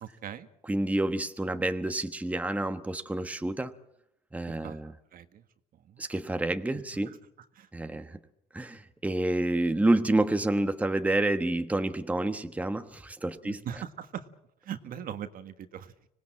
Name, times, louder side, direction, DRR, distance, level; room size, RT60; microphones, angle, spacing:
voice 1, 0.0-0.5 4.5-4.8 5.1-5.4 5.8-6.0 7.5-7.7 13.4-14.2 14.6-15.9, right 9 dB, 60° right, 1.6 m, -40 dB
voice 2, 0.6-3.7 4.3-4.9 6.0-7.2 7.7-8.2 8.5-13.6, right 2 dB, 10° right, 1.1 m, -28 dB
25.5 x 19.0 x 7.6 m
cardioid pair, 110°, 17 cm